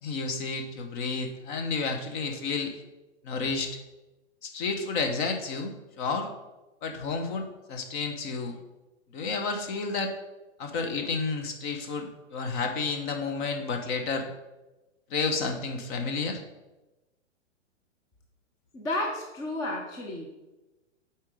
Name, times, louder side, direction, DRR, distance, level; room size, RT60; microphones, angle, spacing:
voice 1, 0.0-2.7 3.2-3.8 4.4-6.3 6.8-8.5 9.1-10.1 10.6-14.3 15.1-16.4, left 4 dB, 40° left, 5 dB, 1.1 m, -31 dB
voice 2, 18.7-20.3, left 1 dB, 10° left, 0 dB, 0.4 m, -32 dB
7.5 x 4.5 x 4.9 m, 1.1 s
hypercardioid pair, 130°, 37 cm